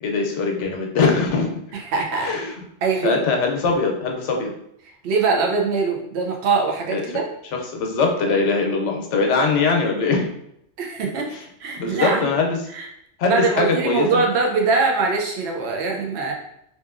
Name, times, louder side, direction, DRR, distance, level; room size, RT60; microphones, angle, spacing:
voice 1, 0.0-1.5 2.2-2.6 3.0-4.5 6.9-7.0 7.5-10.3 11.3-11.4 11.8-12.6 13.2-14.2, left 4 dB, 90° left, 2 dB, 0.9 m, -21 dB
voice 2, 1.7-2.4 2.8-3.2 5.0-7.3 10.8-11.3 11.6-12.3 12.7-12.9 13.2-16.3, right 4 dB, 70° right, 0 dB, 0.8 m, -22 dB
2.8 x 2.4 x 2.4 m, 0.76 s
omnidirectional pair, 1.2 m